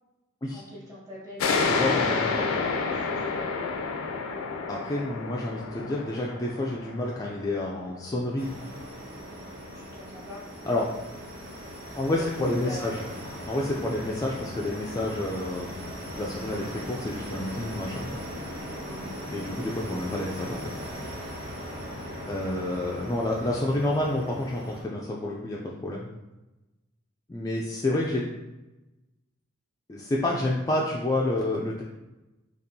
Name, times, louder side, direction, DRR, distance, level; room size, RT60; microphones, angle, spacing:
voice 1, 0.5-2.5 3.0-3.5 9.7-10.4 12.2-13.2 18.8-19.1, equal, 15° right, -6 dB, 1.2 m, -43 dB
sound 1, 1.4-8.6, left 4 dB, 85° left, 0.4 m, -29 dB
voice 2, 1.6-2.7 4.7-8.5 10.6-10.9 12.0-13.0 13.5-15.8 16.1-18.1 19.3-20.7 22.3-26.1 27.3-28.3 29.9-31.8, left 1 dB, 15° left, -3 dB, 0.3 m, -29 dB
sound 2, 8.4-24.8, equal, 55° right, 1.5 m, -39 dB
4.3 x 3.0 x 2.7 m, 1.0 s
head